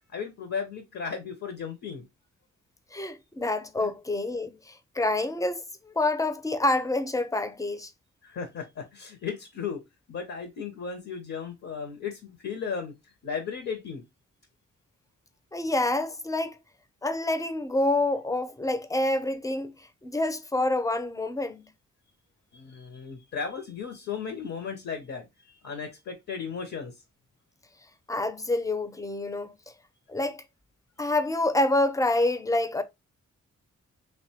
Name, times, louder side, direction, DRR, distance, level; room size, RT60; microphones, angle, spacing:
voice 1, 0.1-2.0 3.8-3.9 8.2-9.8 10.1-14.0 22.5-26.9, left 6 dB, 65° left, 0.7 m, -35 dB
voice 2, 2.9-7.9 15.5-16.6 17.0-21.7 28.1-29.5 30.1-30.4 31.0-32.8, left 2 dB, 10° left, 0.4 m, -27 dB
2.9 x 2.1 x 2.7 m
cardioid pair, 50°, 29 cm